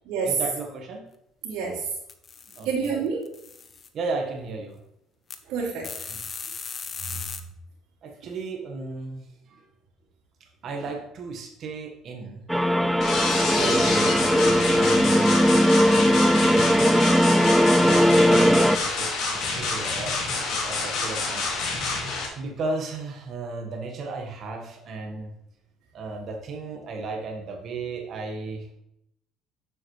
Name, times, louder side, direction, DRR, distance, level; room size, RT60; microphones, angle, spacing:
voice 1, 0.2-1.1 2.5-2.9 3.9-4.8 7.1-7.2 8.0-9.7 10.4-12.4 13.4-16.0 16.4-17.0 17.8-21.5 22.3-25.3 25.9-28.7, right 3 dB, 55° right, 3 dB, 1.4 m, -35 dB
voice 2, 1.4-1.8 2.6-3.2 5.5-5.9 7.0-7.2 13.5-14.5, right 5 dB, 80° right, -8 dB, 2.6 m, -29 dB
sound 1, 2.1-2.9 3.2-3.9 5.3-5.4 5.8-7.4, left 5 dB, 35° left, 0.9 m, -37 dB
sound 2, 12.5-18.8, equal, ahead, 0.4 m, -19 dB
sound 3, 13.0-22.3, left 3 dB, 60° left, 2.7 m, -28 dB
9.2 x 7.0 x 3.2 m, 0.79 s
cardioid pair, 100°, 0 cm